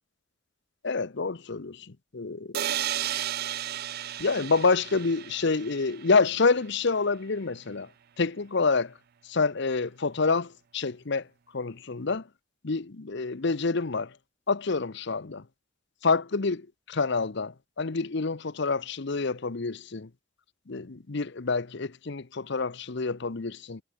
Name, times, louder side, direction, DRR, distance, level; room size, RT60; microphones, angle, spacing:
voice 1, 0.8-2.6 4.2-7.9 8.2-8.9 9.2-11.3 11.5-12.2 12.6-14.1 14.5-15.4 16.0-20.1 20.7-23.8, left 4 dB, 55° left, 0.8 m, -27 dB
sound 1, 2.5-6.3, right 11 dB, 50° right, 0.4 m, -33 dB
head